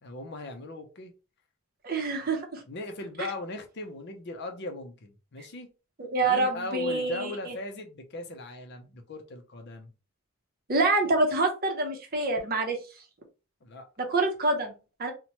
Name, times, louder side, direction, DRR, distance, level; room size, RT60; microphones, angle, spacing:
voice 1, 0.0-1.1 2.7-5.7 6.3-9.9 13.6-13.9, left 2 dB, 50° left, 0.5 m, -39 dB
voice 2, 1.8-2.6 6.0-7.6 10.7-12.8 14.0-15.1, right 2 dB, 45° right, 0.6 m, -27 dB
2.9 x 2.1 x 2.8 m
head